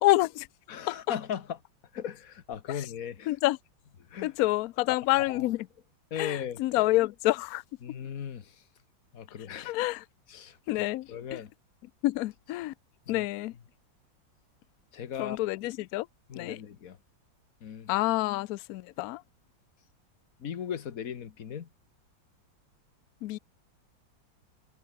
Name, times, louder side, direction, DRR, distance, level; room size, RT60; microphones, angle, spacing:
voice 1, 0.0-0.5 0.9-1.0 2.7-2.9 3.3-3.6 4.2-5.7 6.2-7.6 9.6-10.0 10.7-11.4 12.0-12.7 13.1-13.6 15.2-16.1 16.3-16.6 17.9-19.2 23.2-23.4, left 18 dB, 85° left, 0.8 m, -28 dB
voice 2, 0.7-1.6 1.9-3.3 4.1-4.3 4.9-5.0 5.3-5.4 6.1-6.6 7.8-8.6 9.1-9.7 10.3-10.6 11.1-11.5 13.1-13.3 14.9-15.4 16.3-17.0 17.6-17.9 20.4-21.7, left 8 dB, 50° left, 1.6 m, -37 dB
omnidirectional pair, 2.1 m